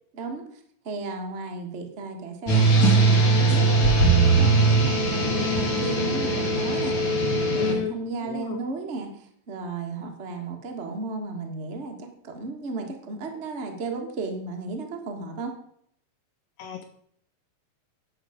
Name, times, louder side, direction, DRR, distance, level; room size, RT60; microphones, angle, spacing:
voice 1, 0.1-0.4 0.8-7.0 7.5-15.5, right 3 dB, 70° right, 2 dB, 0.6 m, -34 dB
sound 1, 2.5-7.7, right 3 dB, 40° left, 2.5 m, -20 dB
voice 2, 7.6-8.6 16.6-16.8, left 10 dB, 80° left, 7 dB, 2.4 m, -32 dB
11.0 x 8.3 x 5.0 m, 0.67 s
omnidirectional pair, 4.1 m